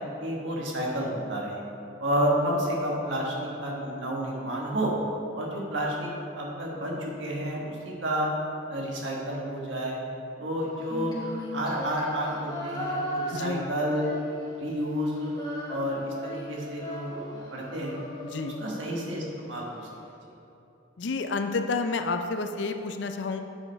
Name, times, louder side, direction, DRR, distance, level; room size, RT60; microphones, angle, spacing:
voice 1, 0.2-1.6 2.0-4.9 5.3-6.1 6.4-8.3 8.7-10.0 10.4-11.2 11.5-14.0 14.6-15.3 15.7-18.0 18.4-19.9, equal, 70° right, -2 dB, 1.4 m, -30 dB
Female singing, 10.8-14.7 15.0-19.2, equal, 20° left, 0.9 m, -37 dB
voice 2, 13.3-13.7 18.2-18.7 21.0-23.4, left 3 dB, 60° left, 7 dB, 0.4 m, -30 dB
7.4 x 5.3 x 4.6 m, 3.0 s
head